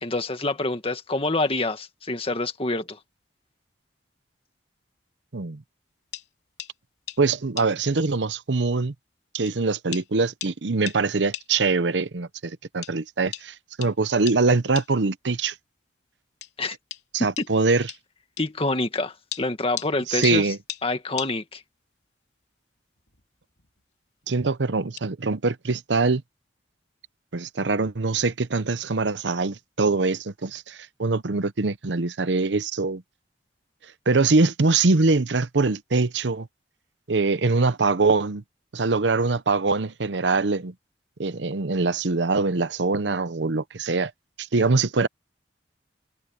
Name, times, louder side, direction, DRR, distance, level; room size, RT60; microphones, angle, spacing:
voice 1, 0.0-3.0 16.6-16.8 17.4-17.5 18.4-20.5 20.8-21.6, left 2 dB, 35° left, 1.9 m, -27 dB
sound 1, 6.1-6.3 6.6-6.7 7.1-7.2 7.6-7.7 8.7-8.8 9.5-9.6 9.9-10.1 10.4-10.6 10.9-11.0 11.3-11.5 12.8-12.9 13.3-13.5 13.8-13.9 14.3-14.4 14.7-14.9 16.4-16.5 16.9-17.0 17.4-17.5 17.9-18.0 18.4-18.5 19.3-19.9 20.2-20.4 20.7-20.8 21.2-21.3 23.0-23.2 23.5-23.8 25.0-25.1, left 11 dB, 70° left, 4.4 m, -36 dB
voice 2, 7.2-8.9 9.3-15.5 17.1-17.9 20.1-20.6 24.3-26.2 27.3-33.0 34.1-36.5 37.1-38.4 38.7-40.7 41.2-44.1 44.4-45.1, right 3 dB, 85° right, 0.8 m, -23 dB
head